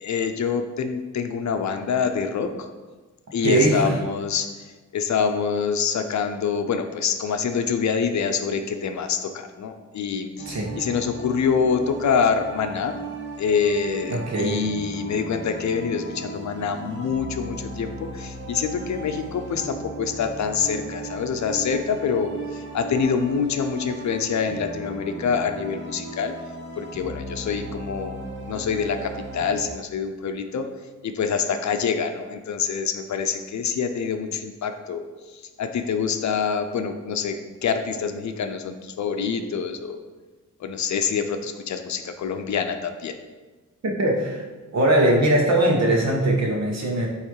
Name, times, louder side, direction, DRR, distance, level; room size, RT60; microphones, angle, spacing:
voice 1, 0.0-2.7 3.3-4.5 4.9-13.0 13.4-22.3 22.7-26.3 26.8-28.2 28.5-30.7 31.0-35.0 35.6-37.4 37.6-40.0 40.6-43.1, left 6 dB, 60° left, 7 dB, 0.6 m, -26 dB
voice 2, 3.4-4.0 10.5-10.7 14.1-14.6 43.8-44.4 44.7-47.1, right 1 dB, 55° right, 0 dB, 1.4 m, -21 dB
sound 1, 10.4-29.6, right 2 dB, 35° right, 1.1 m, -37 dB
8.1 x 3.2 x 4.7 m, 1.3 s
wide cardioid pair, 130°, 31 cm